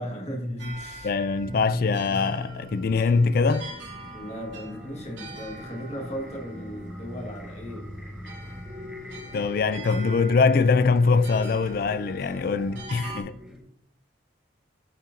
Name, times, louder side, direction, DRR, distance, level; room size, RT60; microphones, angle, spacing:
voice 1, 0.0-1.1 4.1-7.9, equal, 35° left, 1.5 m, -36 dB
sound 1, 0.6-13.2, right 2 dB, 70° right, 2.3 m, -44 dB
voice 2, 1.0-3.7 9.3-13.3, left 4 dB, 50° left, 0.3 m, -23 dB
sound 2, 1.4-13.6, left 1 dB, 5° right, 1.3 m, -41 dB
12.5 x 5.7 x 2.6 m
head